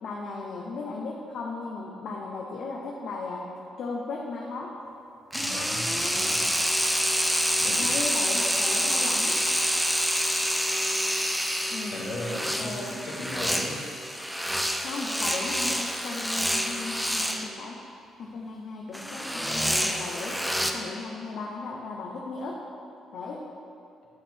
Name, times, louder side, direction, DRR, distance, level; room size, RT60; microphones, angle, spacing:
voice 1, 0.0-3.5 3.8-4.8 7.8-9.5 11.7-12.2 12.6-13.3 14.8-17.8 18.2-20.4 20.7-22.7 23.1-23.5, left 3 dB, 70° left, -2 dB, 0.9 m, -36 dB
voice 2, 5.3-6.6 7.6-8.0 11.9-13.9, left 1 dB, 85° left, -3 dB, 1.5 m, -37 dB
sound 1, 5.3-17.5 18.9-20.7, equal, ahead, 0.6 m, -27 dB
11.0 x 4.4 x 4.5 m, 2.6 s
cardioid pair, 90°, 0 cm